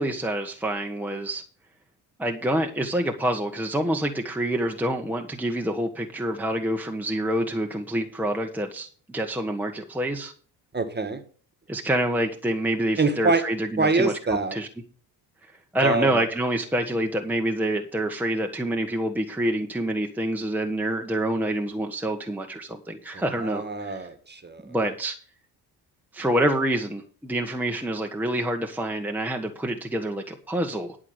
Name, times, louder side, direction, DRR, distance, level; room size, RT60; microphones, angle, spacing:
voice 1, 0.0-1.4 2.2-10.3 11.7-14.1 14.5-14.7 15.7-24.1 24.6-25.1 26.1-31.0, right 1 dB, 5° right, 1.3 m, -27 dB
voice 2, 10.7-11.2 13.0-13.4 13.8-14.6 15.8-16.2 23.1-24.6, right 3 dB, 25° right, 1.8 m, -25 dB
11.0 x 4.9 x 7.9 m
supercardioid pair, 65°, 43 cm